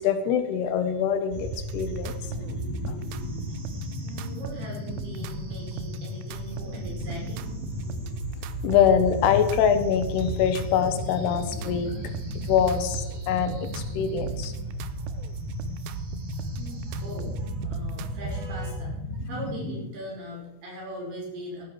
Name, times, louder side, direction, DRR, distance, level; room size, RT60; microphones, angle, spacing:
voice 1, 0.0-2.1 2.9-3.0 8.6-12.0 12.4-14.5, left 8 dB, 80° left, 9 dB, 3.0 m, -24 dB
sound 1, 1.3-19.9, equal, 50° right, 4.9 m, -34 dB
sound 2, 1.5-18.5, right 10 dB, 90° right, 2.9 m, -40 dB
voice 2, 4.0-7.5 12.3-12.5 14.9-15.1 15.9-16.0 16.3-21.7, equal, 65° right, -2 dB, 7.2 m, -40 dB
15.5 x 12.5 x 4.6 m, 0.97 s
omnidirectional pair, 4.9 m